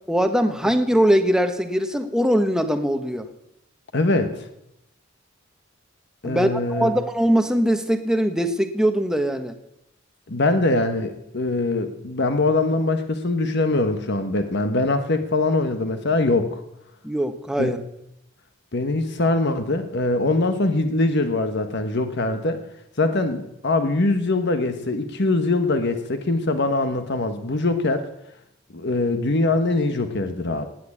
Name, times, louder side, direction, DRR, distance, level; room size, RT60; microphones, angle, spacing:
voice 1, 0.1-3.3 6.2-9.5 17.0-17.8, equal, 5° right, 7 dB, 1.1 m, -21 dB
voice 2, 3.9-4.5 6.2-6.9 10.3-16.6 17.6-17.7 18.7-22.6 23.0-28.0 28.7-30.7, left 2 dB, 55° left, 8 dB, 1.3 m, -22 dB
18.0 x 9.0 x 8.7 m, 0.82 s
head